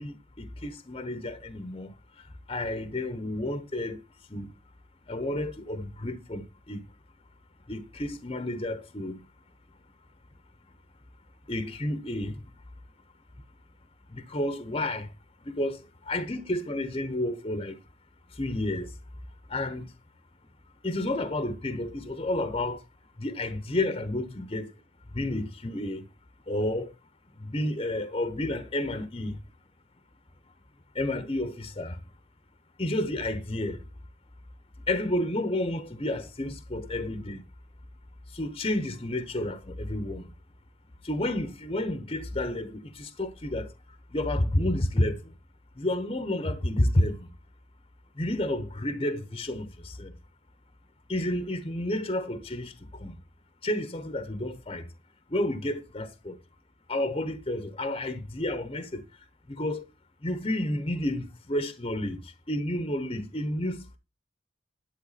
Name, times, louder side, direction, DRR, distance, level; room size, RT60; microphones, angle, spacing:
voice 1, 0.0-1.9 2.5-4.0 4.3-4.5 5.1-6.8 7.7-9.2 11.5-12.4 14.1-15.1 15.4-17.8 18.3-18.9 19.5-19.9 20.8-22.8 23.2-24.7 25.1-26.1 26.5-26.9 27.4-29.4 30.9-32.0 32.8-33.8 34.9-37.4 38.3-40.3 41.0-43.7 44.1-45.3 45.8-47.3 48.2-49.7 50.0-50.1 51.1-53.1 53.6-54.9 55.3-56.4 56.9-59.0 59.5-59.8 60.2-62.2 62.5-64.0, left 1 dB, 30° left, 1.0 m, -30 dB
11.0 x 9.1 x 4.2 m
head